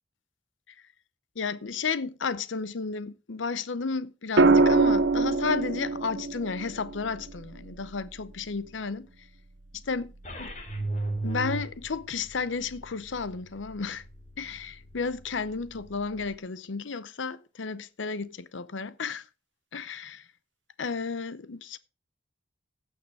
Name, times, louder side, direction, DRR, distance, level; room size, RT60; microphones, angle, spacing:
voice 1, 1.4-9.1 9.9-10.1 10.4-10.5 11.2-14.0 14.4-19.2 19.7-20.2 20.8-21.8, left 5 dB, 85° left, 0.7 m, -32 dB
sound 1, 4.4-8.5 10.2-10.6, right 3 dB, 75° right, 0.9 m, -24 dB
sound 2, 10.2-16.3, right 2 dB, 40° left, 2.8 m, -38 dB
15.5 x 6.5 x 4.8 m
head